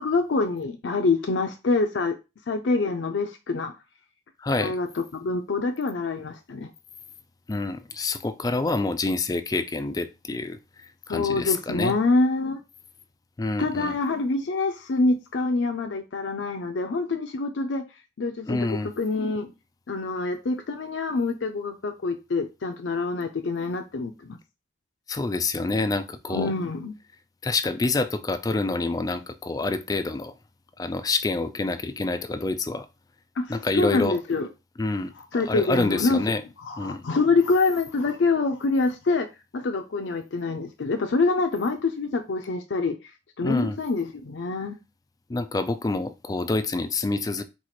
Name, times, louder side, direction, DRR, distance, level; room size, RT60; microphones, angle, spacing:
voice 1, 0.0-2.2 2.5-3.7 4.6-4.9 5.1-6.7 11.1-12.6 13.6-17.9 18.2-19.5 19.9-24.4 26.3-26.9 33.4-34.5 35.3-36.2 36.6-39.3 39.5-42.9 43.4-44.8, left 3 dB, 85° left, 0.5 m, -26 dB
voice 2, 4.4-4.8 7.5-10.6 11.1-12.0 13.4-14.0 18.5-18.9 25.1-26.5 27.4-30.3 30.8-32.9 33.5-34.2 34.8-36.4 36.8-37.0 43.4-43.8 45.3-47.4, left 3 dB, 20° left, 0.3 m, -27 dB
4.6 x 2.4 x 4.2 m
head